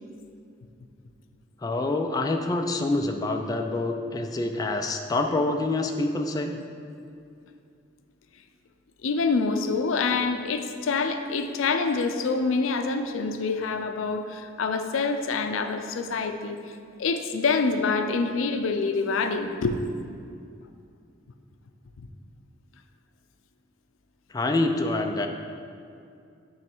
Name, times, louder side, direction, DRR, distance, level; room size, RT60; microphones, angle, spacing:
voice 1, 1.6-6.6 24.3-25.3, left 2 dB, 20° left, 4 dB, 0.3 m, -26 dB
voice 2, 9.0-16.6 17.0-19.8, left 4 dB, 85° left, 7 dB, 0.4 m, -26 dB
9.0 x 3.1 x 4.5 m, 2.5 s
head